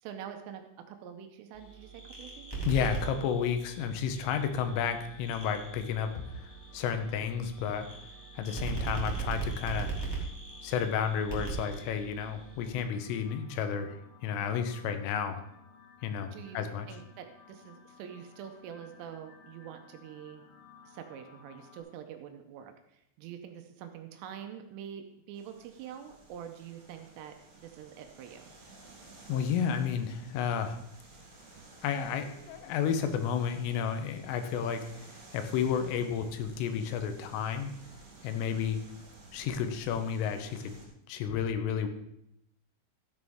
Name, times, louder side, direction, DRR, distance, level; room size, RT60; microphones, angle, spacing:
voice 1, 0.0-2.5 16.3-20.4 20.8-28.6, right 9 dB, 85° right, 6 dB, 3.4 m, -46 dB
sound 1, 1.5-12.8, right 5 dB, 10° left, 1.3 m, -39 dB
voice 2, 2.7-7.9 8.4-9.9 10.6-14.0 14.2-15.4 16.0-16.9 29.3-30.8 31.8-34.9 35.3-37.7 38.2-38.8 39.3-40.8 41.1-41.9, left 7 dB, 85° left, 8 dB, 3.5 m, -31 dB
sound 2, 4.6-21.8, left 6 dB, 50° left, 2.1 m, -58 dB
sound 3, 25.3-40.9, right 3 dB, 60° right, 5.7 m, -54 dB
13.0 x 9.3 x 3.6 m, 0.77 s
omnidirectional pair, 5.6 m